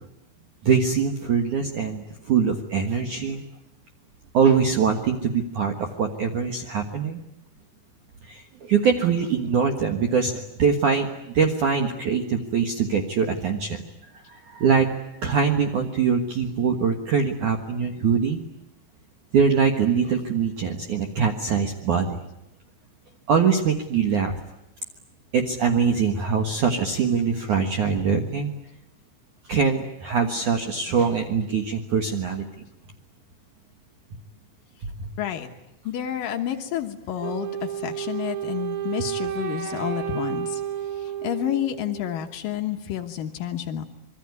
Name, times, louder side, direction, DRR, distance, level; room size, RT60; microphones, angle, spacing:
voice 1, 0.6-3.4 4.3-7.2 8.2-13.8 14.3-14.9 15.2-18.4 19.3-22.2 23.3-24.4 25.3-28.5 29.5-32.4 35.0-35.1, right 6 dB, 70° right, 4 dB, 1.8 m, -23 dB
voice 2, 35.2-35.5 35.8-40.6 41.0-43.8, left 11 dB, 90° left, 4 dB, 1.9 m, -30 dB
Wind instrument woodwind instrument, 37.2-42.3, right 10 dB, 85° right, 4.4 m, -31 dB
26.0 x 23.0 x 9.6 m, 0.85 s
omnidirectional pair, 5.9 m